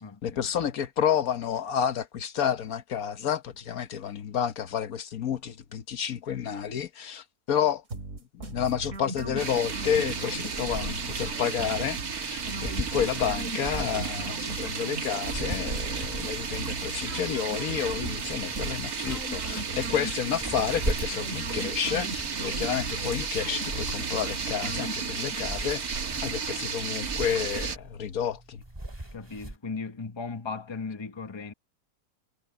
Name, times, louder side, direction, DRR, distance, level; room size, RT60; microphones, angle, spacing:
voice 1, 0.2-7.8 8.4-28.6, left 8 dB, 70° left, 1.4 m, -30 dB
sound 1, 7.9-25.4, right 2 dB, 55° right, 2.7 m, -39 dB
sound 2, 9.4-27.8, right 6 dB, 75° right, 2.3 m, -33 dB
sound 3, 10.5-29.6, right 1 dB, 15° right, 2.4 m, -41 dB
voice 2, 29.1-31.5, left 4 dB, 20° left, 1.0 m, -36 dB
omnidirectional pair, 1.6 m